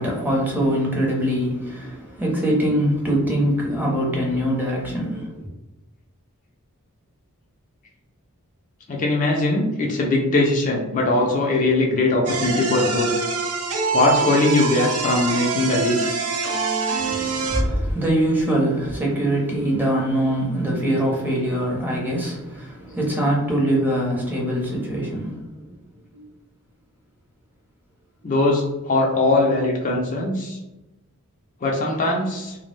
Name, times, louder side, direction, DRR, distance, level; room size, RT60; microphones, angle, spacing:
voice 1, 0.0-5.5 17.0-25.7 26.1-26.2, right 1 dB, 10° right, -3 dB, 0.6 m, -23 dB
voice 2, 8.9-13.1 13.9-16.0 28.2-30.6 31.6-32.6, left 2 dB, 35° left, -1 dB, 0.4 m, -20 dB
sound 1, 12.3-17.6, right 4 dB, 85° right, 0.5 m, -25 dB
2.1 x 2.0 x 3.1 m, 1.0 s
head